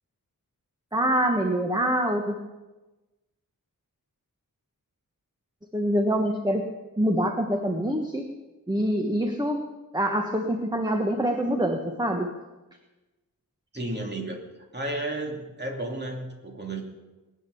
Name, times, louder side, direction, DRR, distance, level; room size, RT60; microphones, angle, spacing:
voice 1, 0.9-2.4 5.7-6.6 7.0-8.3 8.7-9.7 9.9-12.3, equal, 10° right, 3 dB, 1.3 m, -25 dB
voice 2, 13.7-14.4 14.7-16.8, right 2 dB, 30° right, 1 dB, 2.7 m, -32 dB
20.0 x 8.9 x 7.0 m, 1.1 s
wide cardioid pair, 100°, 35 cm